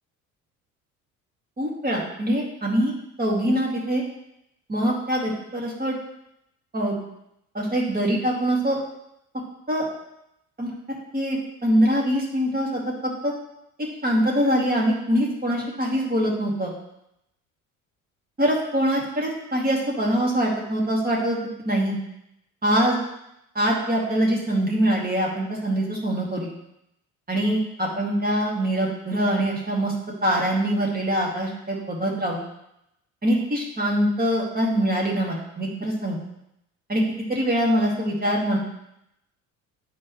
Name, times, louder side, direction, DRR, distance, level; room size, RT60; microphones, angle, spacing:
voice 1, 1.6-4.0 4.7-6.0 6.7-7.0 7.5-8.8 9.7-9.9 10.6-10.8 11.1-12.8 13.2-13.3 14.0-16.7 18.4-21.9 22.6-23.0 23.5-26.5 27.3-29.9 30.2-32.4 33.2-36.2 36.9-38.6, equal, 20° right, -2 dB, 2.2 m, -23 dB
9.5 x 4.5 x 3.1 m, 0.82 s
figure-of-eight pair, 55°, 39 cm